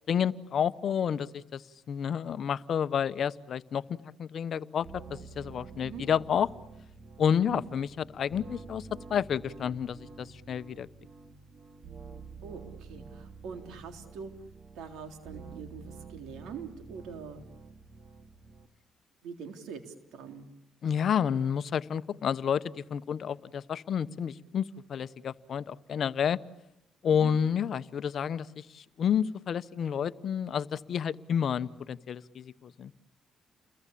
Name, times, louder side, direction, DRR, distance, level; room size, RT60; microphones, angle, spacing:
voice 1, 0.1-1.6 1.9-6.5 7.2-10.9 20.8-26.4 27.0-32.9, left 8 dB, 60° left, 14 dB, 0.9 m, -30 dB
sound 1, 4.8-18.7, right 4 dB, 45° right, 2.4 m, -48 dB
voice 2, 12.4-14.3 14.8-17.5 19.2-20.5 27.1-27.3, right 6 dB, 85° right, 6 dB, 3.7 m, -43 dB
30.0 x 22.5 x 8.5 m, 0.85 s
cardioid pair, 90°, 0 cm